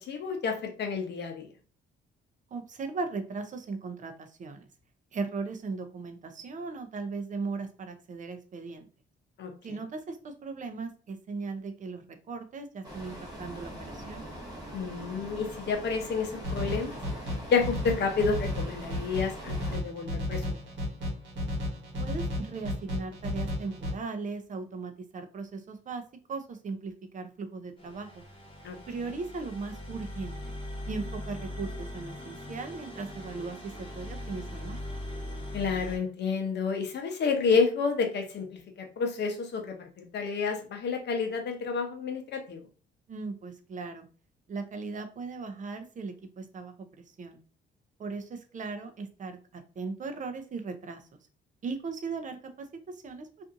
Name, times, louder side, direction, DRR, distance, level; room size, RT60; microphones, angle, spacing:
voice 1, 0.0-1.5 9.4-9.5 14.7-17.0 17.5-20.4 28.6-28.8 35.5-42.6, left 5 dB, 60° left, 4 dB, 0.7 m, -30 dB
voice 2, 2.5-4.6 5.1-8.9 9.6-14.2 22.0-28.2 28.9-30.5 30.9-34.8 43.1-44.1 44.5-47.4 48.0-51.1 51.6-53.4, right 4 dB, 40° right, 7 dB, 0.5 m, -38 dB
sound 1, 12.8-19.8, equal, 20° right, 1.3 m, -43 dB
sound 2, 16.4-23.9, left 1 dB, 70° right, 1.2 m, -33 dB
sound 3, 27.8-36.0, left 1 dB, 25° left, 1.1 m, -40 dB
2.6 x 2.5 x 2.5 m, 0.38 s
cardioid pair, 90°, 20 cm